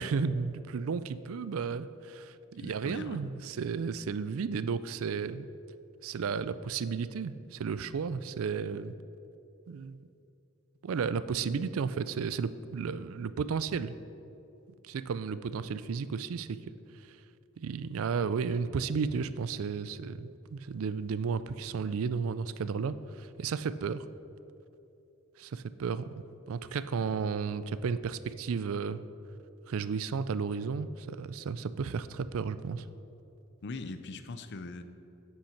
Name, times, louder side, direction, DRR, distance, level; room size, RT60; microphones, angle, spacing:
voice 1, 0.0-5.5 6.0-8.9 9.7-10.1 10.8-13.9 14.8-16.6 17.1-17.2 17.6-24.1 25.4-29.0 29.7-32.8, right 5 dB, 70° right, 15 dB, 0.4 m, -33 dB
voice 2, 2.6-3.2 33.6-34.8, left 3 dB, 55° left, 10 dB, 0.6 m, -41 dB
8.7 x 7.8 x 5.8 m, 2.8 s
head